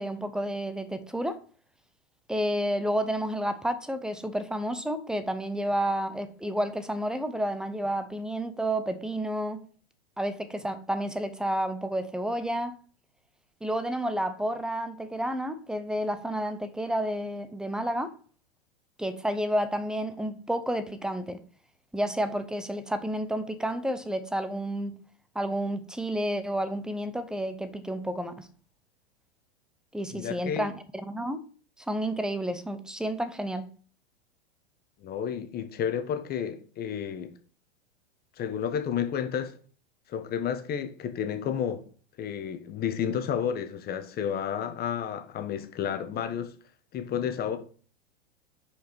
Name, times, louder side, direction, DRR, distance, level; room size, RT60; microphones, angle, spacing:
voice 1, 0.0-1.4 2.3-9.6 10.2-12.8 13.6-18.1 19.0-21.4 21.9-25.0 25.3-28.5 29.9-31.4 31.9-33.7, right 1 dB, ahead, 0.8 m, -30 dB
voice 2, 30.1-30.7 35.0-37.3 38.4-39.5 40.1-41.8 42.2-46.5 46.9-47.6, left 8 dB, 30° left, 1.3 m, -31 dB
5.7 x 5.0 x 6.1 m
hypercardioid pair, 110°, 33 cm